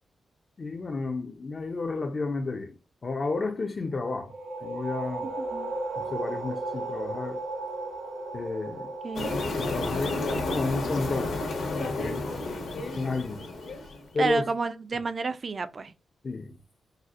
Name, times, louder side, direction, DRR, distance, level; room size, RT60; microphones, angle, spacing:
voice 1, 0.6-2.8 3.0-4.3 4.6-5.3 6.0-7.4 8.3-8.9 9.6-10.2 10.5-11.4 11.8-12.3 12.9-13.5 14.1-14.5 16.2-16.6, left 3 dB, 35° left, 0.4 m, -31 dB
sound 1, 4.2-13.6, right 2 dB, 90° right, 1.2 m, -37 dB
voice 2, 5.2-5.7 9.0-9.3 14.2-15.9, right 4 dB, 35° right, 0.3 m, -30 dB
sound 2, 9.1-14.1, left 2 dB, 75° left, 1.0 m, -31 dB
4.1 x 2.0 x 2.4 m
wide cardioid pair, 145°, 0 cm